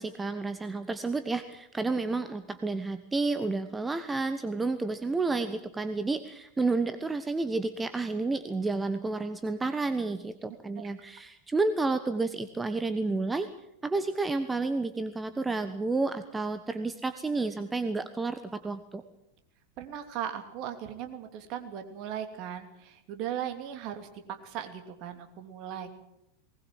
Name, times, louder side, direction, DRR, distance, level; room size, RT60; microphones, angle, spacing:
voice 1, 0.0-13.5 13.8-19.0, right 3 dB, 10° right, 10 dB, 1.1 m, -30 dB
voice 2, 19.8-24.1 24.4-25.9, right 10 dB, 45° right, 6 dB, 3.0 m, -38 dB
20.0 x 19.5 x 7.7 m, 0.83 s
figure-of-eight pair, 90°, 0 cm